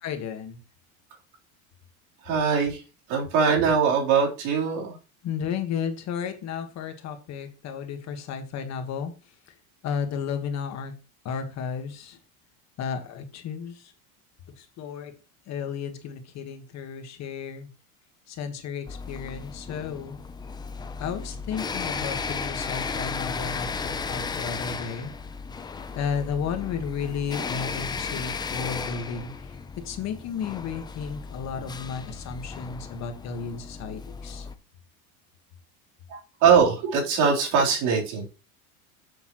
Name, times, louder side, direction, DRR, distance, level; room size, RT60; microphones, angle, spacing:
voice 1, 0.0-0.6 5.2-9.1 9.8-10.9 11.2-12.2 12.8-13.9 14.6-15.1 15.5-17.7 18.3-20.2 21.0-25.1 25.9-29.5 29.8-34.5, left 6 dB, 40° left, 7 dB, 1.4 m, -33 dB
voice 2, 2.2-2.8 3.1-5.0 36.1-38.2, right 6 dB, 65° right, -1 dB, 3.6 m, -22 dB
sound 1, 18.9-34.5, left 5 dB, 10° left, 0.4 m, -35 dB
9.9 x 7.1 x 3.0 m, 0.31 s
supercardioid pair, 140°, 41 cm